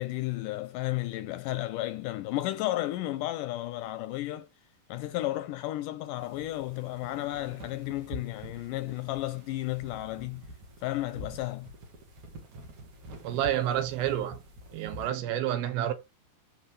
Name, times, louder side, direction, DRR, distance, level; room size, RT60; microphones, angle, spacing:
voice 1, 0.0-4.5 4.9-10.4 10.8-11.7, left 16 dB, 80° left, 2.0 m, -33 dB
sound 1, 6.2-15.1, equal, 55° right, 3.2 m, -47 dB
voice 2, 13.2-14.4 14.7-15.9, right 11 dB, 85° right, 2.9 m, -29 dB
13.5 x 5.5 x 3.3 m
omnidirectional pair, 4.2 m